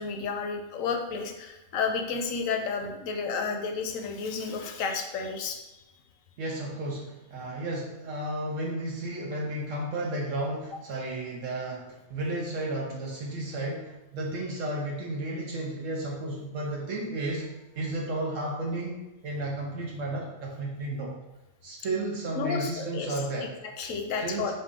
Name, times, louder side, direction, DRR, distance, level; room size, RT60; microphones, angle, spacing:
voice 1, 0.0-5.8 22.3-23.2 23.6-24.5, left 5 dB, 80° left, 4 dB, 1.0 m, -31 dB
voice 2, 6.4-21.1 21.6-23.5 24.2-24.5, right 1 dB, 75° right, -2 dB, 1.0 m, -33 dB
5.4 x 2.6 x 3.6 m, 1.0 s
omnidirectional pair, 1.4 m